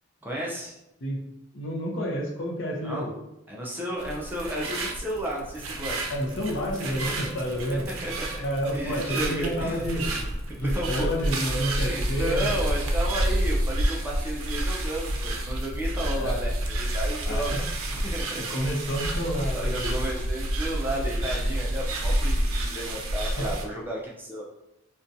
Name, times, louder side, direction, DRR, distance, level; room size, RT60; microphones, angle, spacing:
voice 1, 0.2-0.7 2.8-3.1 3.5-6.0 7.1-7.2 8.0-8.4 8.7-10.2 10.6-11.1 11.8-17.5 17.9-18.6 19.1-19.2 19.5-24.4, right 1 dB, 10° right, -4 dB, 0.3 m, -33 dB
voice 2, 1.5-3.1 6.1-7.9 8.4-10.1 10.6-12.5 16.2-16.3 17.3-17.6 18.4-19.9 23.4-23.5, equal, 60° left, -1 dB, 0.6 m, -29 dB
sound 1, 4.0-23.6, right 1 dB, 85° right, 0.4 m, -29 dB
2.5 x 2.2 x 2.6 m, 0.86 s
head